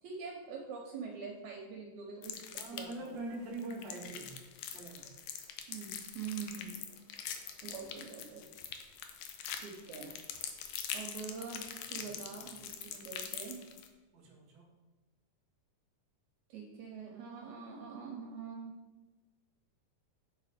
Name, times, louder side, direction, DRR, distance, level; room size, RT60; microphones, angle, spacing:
voice 1, 0.0-2.4 2.7-3.2 5.7-6.8 7.6-8.4 9.6-10.2 10.9-13.6 16.5-18.7, right 6 dB, 70° right, -1 dB, 2.0 m, -44 dB
sound 1, 2.2-3.1 3.5-13.9, left 8 dB, 75° left, 2.1 m, -43 dB
voice 2, 2.6-4.3 4.7-5.1 14.1-14.7, right 2 dB, 40° right, -2 dB, 1.5 m, -43 dB
9.0 x 3.7 x 5.0 m, 1.2 s
omnidirectional pair, 3.9 m